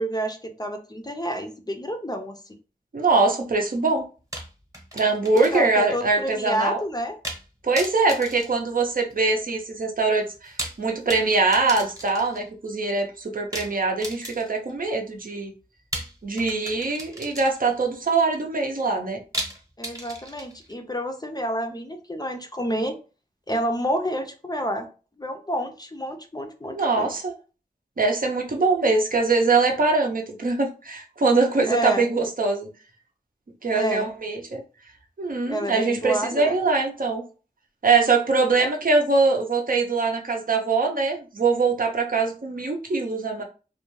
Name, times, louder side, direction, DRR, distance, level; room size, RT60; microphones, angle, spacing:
voice 1, 0.0-2.4 5.3-7.2 19.8-23.0 23.5-24.9 25.2-27.1 31.7-32.1 33.7-34.1 35.5-36.6 38.6-38.7, equal, 25° left, 5 dB, 0.4 m, -29 dB
voice 2, 2.9-4.1 4.9-6.8 7.6-10.5 10.8-15.5 16.2-19.2 26.7-27.3 28.0-32.7 33.6-34.6 35.2-37.2 37.8-43.4, right 3 dB, 65° right, 2 dB, 0.6 m, -23 dB
sound 1, 4.3-5.8 6.1-6.2 7.2-7.5 7.8-9.3 10.3-12.5 13.5-14.7 15.9-17.8 19.3-20.7, right 1 dB, 20° right, 0.9 m, -36 dB
2.4 x 2.2 x 3.0 m, 0.35 s
wide cardioid pair, 50°, 16 cm